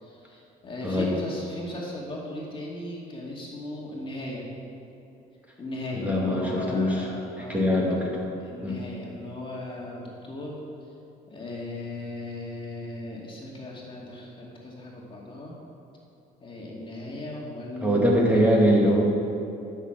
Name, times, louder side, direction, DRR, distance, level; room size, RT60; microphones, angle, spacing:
voice 1, 0.0-4.5 5.6-7.8 8.4-10.7 11.3-15.6 16.4-18.1 18.3-18.4, left 1 dB, 30° left, -3 dB, 2.3 m, -37 dB
voice 2, 5.9-7.1 7.4-8.2 8.6-8.8 17.8-19.0, equal, 10° right, -4 dB, 2.4 m, -22 dB
13.0 x 6.6 x 6.6 m, 2.8 s
cardioid pair, 110°, 17 cm